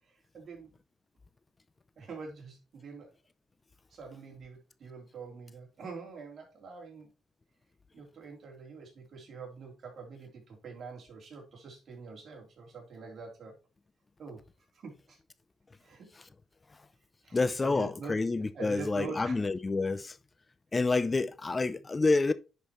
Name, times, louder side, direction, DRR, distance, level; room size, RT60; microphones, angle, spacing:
voice 1, 0.0-0.7 2.0-3.1 3.9-7.1 7.9-13.5 14.2-14.4 14.7-15.2 15.8-16.1 17.2-19.4, right 4 dB, 50° right, 3.4 m, -45 dB
voice 2, 17.3-20.2 20.7-22.3, left 3 dB, 25° left, 0.4 m, -28 dB
10.0 x 5.2 x 3.1 m
cardioid pair, 90°, 0 cm